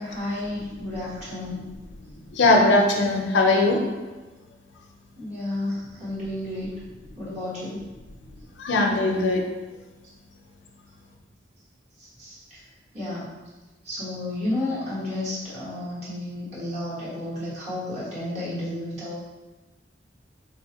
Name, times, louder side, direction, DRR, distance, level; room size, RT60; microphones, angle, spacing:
voice 1, 0.0-1.7 5.2-6.7 7.1-7.8 12.2-12.6 12.9-13.3 13.8-19.2, left 1 dB, 40° right, -9 dB, 1.3 m, -32 dB
voice 2, 2.0-3.8 8.6-9.4, left 2 dB, 85° left, 1 dB, 0.5 m, -20 dB
4.1 x 2.5 x 2.8 m, 1.2 s
head